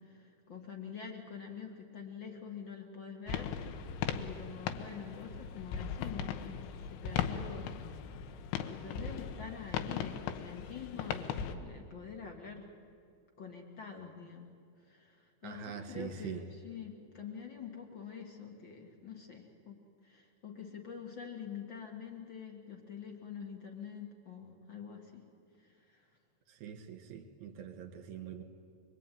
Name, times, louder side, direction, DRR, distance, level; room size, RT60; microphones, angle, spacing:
voice 1, 0.0-7.7 8.3-12.7 13.4-14.5 14.8-25.2 25.6-26.1, left 6 dB, 45° left, 2 dB, 1.6 m, -46 dB
sound 1, 3.3-11.5, left 8 dB, 90° left, 3.5 m, -38 dB
voice 2, 15.4-16.4 26.5-28.4, right 8 dB, 55° right, 6 dB, 2.5 m, -44 dB
24.5 x 23.0 x 9.3 m, 2.4 s
omnidirectional pair, 5.3 m